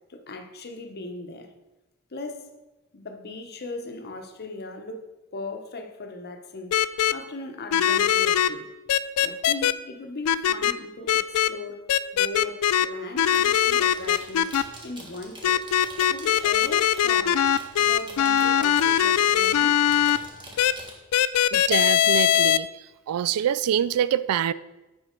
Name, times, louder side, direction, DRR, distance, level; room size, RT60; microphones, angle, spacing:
voice 1, 0.1-1.5 2.1-2.5 2.9-5.1 5.3-6.8 7.1-8.7 9.2-11.8 12.1-15.6 16.1-17.5 17.8-19.8 20.3-20.7, left 2 dB, 45° left, 0.9 m, -38 dB
sound 1, 6.7-7.1 7.7-8.5 8.9-9.7 10.2-10.7 11.1-11.5 11.9-12.9 13.2-14.6 15.4-20.2 20.6-20.7 21.1-22.6, left 10 dB, 80° left, 0.3 m, -21 dB
sound 2, 13.1-20.9, right 1 dB, 20° right, 1.5 m, -45 dB
voice 2, 21.5-22.7 23.1-24.5, right 9 dB, 85° right, 0.3 m, -25 dB
8.0 x 5.4 x 4.4 m
head